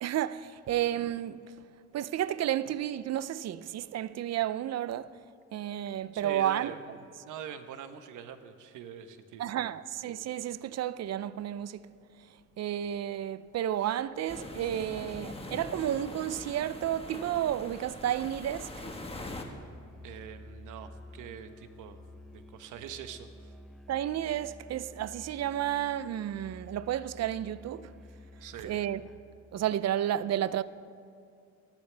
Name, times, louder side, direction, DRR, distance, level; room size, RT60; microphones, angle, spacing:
voice 1, 0.0-1.4 1.9-5.1 5.5-6.7 9.4-11.9 12.6-18.8 23.9-27.9 28.6-29.0 29.5-30.6, right 11 dB, 60° right, 0.6 m, -32 dB
voice 2, 6.1-6.8 7.2-9.7 20.0-22.0 22.3-23.5 28.4-28.8, right 9 dB, 85° right, 1.1 m, -44 dB
sound 1, 14.3-19.5, left 2 dB, 20° left, 1.6 m, -42 dB
Musical instrument, 18.9-29.3, left 1 dB, ahead, 0.9 m, -51 dB
28.0 x 11.5 x 3.4 m
cardioid pair, 90°, 30 cm